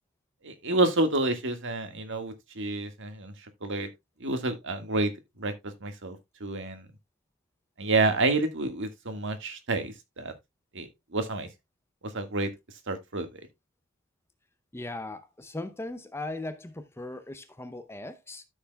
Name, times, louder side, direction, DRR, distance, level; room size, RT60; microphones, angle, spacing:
voice 1, 0.4-3.3 3.6-3.9 4.2-5.1 5.4-5.5 5.8-6.9 7.8-10.3 10.7-11.5 12.1-12.5 12.9-13.3, right 2 dB, 60° right, 1.7 m, -29 dB
voice 2, 14.7-18.4, left 2 dB, 10° left, 0.6 m, -38 dB
13.0 x 6.6 x 2.3 m
head